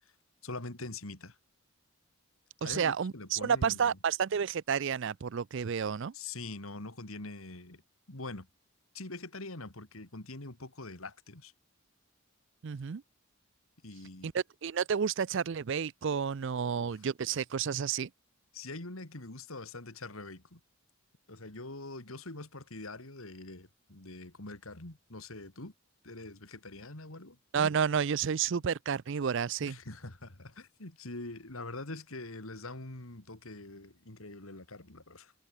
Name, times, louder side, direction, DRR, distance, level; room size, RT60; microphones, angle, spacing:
voice 1, 0.4-1.4 2.6-4.0 6.1-7.8 8.1-8.5 8.9-11.5 13.8-14.3 16.7-17.0 18.5-20.6 21.3-25.7 26.0-27.4 29.6-35.3, left 2 dB, 70° left, 2.9 m, -44 dB
voice 2, 2.6-6.1 12.6-13.0 14.2-18.1 27.5-29.8, right 7 dB, 55° right, 0.4 m, -31 dB
head